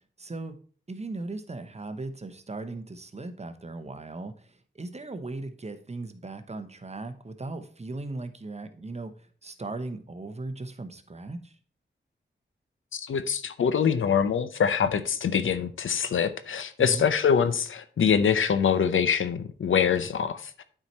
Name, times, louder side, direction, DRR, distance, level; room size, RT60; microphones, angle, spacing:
voice 1, 0.2-0.6 0.9-11.6 16.8-17.1, right 2 dB, 35° right, 9 dB, 0.9 m, -38 dB
voice 2, 12.9-20.5, left 7 dB, 85° left, 12 dB, 0.6 m, -24 dB
8.8 x 4.7 x 4.3 m, 0.44 s
cardioid pair, 60°, 20 cm